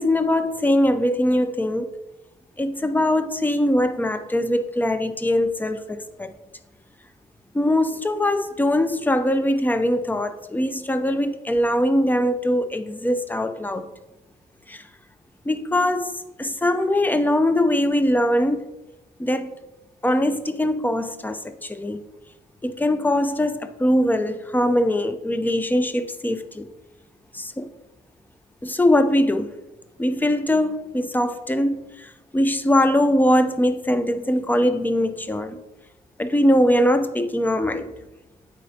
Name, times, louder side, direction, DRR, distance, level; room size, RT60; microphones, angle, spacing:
voice 1, 0.0-1.9 2.6-6.3 7.5-13.8 14.7-14.8 15.5-16.1 16.4-18.6 19.2-19.5 20.0-22.0 22.6-26.7 27.3-27.7 28.6-29.5 30.0-31.8 32.3-35.6 36.2-37.9, left 1 dB, 10° left, 0.4 m, -21 dB
8.3 x 4.3 x 2.7 m
cardioid pair, 110°, 18 cm